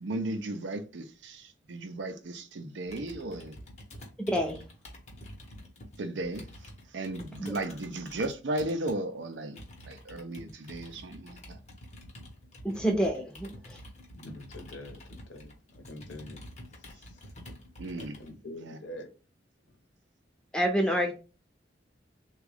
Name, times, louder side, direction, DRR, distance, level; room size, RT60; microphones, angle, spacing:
voice 1, 0.0-3.5 6.0-6.4 6.9-9.6 9.9-11.6 17.8-18.1 18.6-18.8, right 2 dB, 80° right, 0.6 m, -35 dB
Computer keyboard, 2.9-9.0 9.6-18.3, equal, 35° left, 0.9 m, -48 dB
voice 2, 4.3-4.6 7.4-7.6 12.6-13.8 20.5-21.1, equal, 5° left, 0.6 m, -28 dB
voice 3, 14.1-16.4 16.8-17.2 18.0-19.1, left 1 dB, 80° left, 0.9 m, -45 dB
3.5 x 2.3 x 3.4 m
head